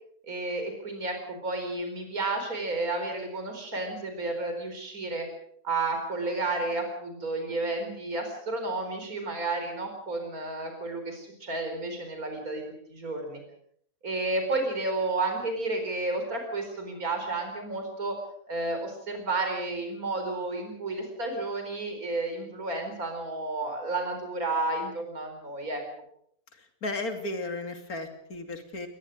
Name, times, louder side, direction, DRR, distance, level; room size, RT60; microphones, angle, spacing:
voice 1, 0.2-5.3 5.6-12.6 12.9-13.4 14.0-18.2 18.5-25.8, right 2 dB, 65° right, 5 dB, 4.9 m, -31 dB
voice 2, 26.5-28.9, left 2 dB, 65° left, 6 dB, 3.1 m, -35 dB
22.0 x 19.5 x 6.4 m, 0.67 s
omnidirectional pair, 1.7 m